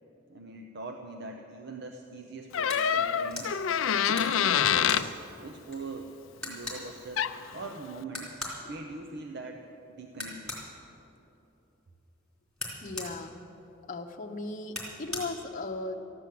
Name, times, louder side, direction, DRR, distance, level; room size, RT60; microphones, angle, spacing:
voice 1, 0.3-3.5 4.1-4.7 5.4-6.2 6.4-7.3 7.5-8.3 8.7-10.6, right 3 dB, 60° right, 3 dB, 0.8 m, -42 dB
Door, 2.5-5.1 6.9-7.0 7.2-7.5, left 8 dB, 75° left, 0.5 m, -26 dB
sound 1, 2.7-2.9 3.2-3.5 4.1-5.0 5.7-5.8 6.1-6.2 6.4-6.8 8.0-8.6 10.1-10.6 12.6-13.1 14.7-15.2, left 2 dB, 5° left, 3.2 m, -38 dB
voice 2, 12.8-13.4 13.9-15.9, left 3 dB, 40° left, 1 dB, 0.8 m, -37 dB
14.5 x 10.5 x 7.6 m, 3.0 s
head